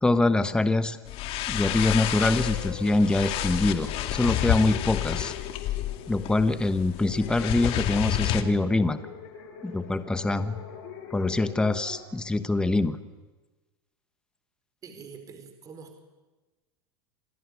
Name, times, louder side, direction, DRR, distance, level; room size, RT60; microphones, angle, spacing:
voice 1, 0.0-1.0 1.5-5.3 6.1-9.0 9.6-10.5 11.1-13.0, left 2 dB, 5° left, 11 dB, 1.2 m, -24 dB
sound 1, 1.0-8.4, left 13 dB, 45° left, 2.3 m, -30 dB
sound 2, 1.7-12.0, left 8 dB, 65° left, 7.5 m, -43 dB
voice 2, 14.8-16.0, right 5 dB, 25° right, 6 dB, 4.7 m, -45 dB
28.0 x 18.5 x 9.7 m, 1.2 s
supercardioid pair, 125°, 13 cm